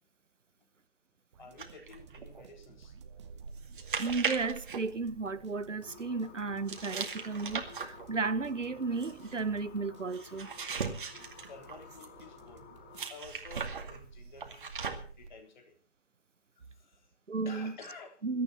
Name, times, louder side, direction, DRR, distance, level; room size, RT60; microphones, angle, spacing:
sound 1, 1.3-13.5, right 8 dB, 25° right, 1.4 m, -59 dB
voice 1, 1.4-3.0 11.5-12.7 13.1-15.8 16.6-17.1 17.5-18.2, left 4 dB, 40° left, 3.7 m, -51 dB
sound 2, 1.6-5.7 6.7-12.2 12.9-15.3, right 5 dB, 45° right, 2.3 m, -39 dB
voice 2, 4.0-10.5 17.3-17.7 18.2-18.4, right 4 dB, 80° right, 1.1 m, -34 dB
sound 3, 5.8-13.1, left 7 dB, 10° left, 0.9 m, -53 dB
21.5 x 12.5 x 4.3 m
figure-of-eight pair, 150°, 37 cm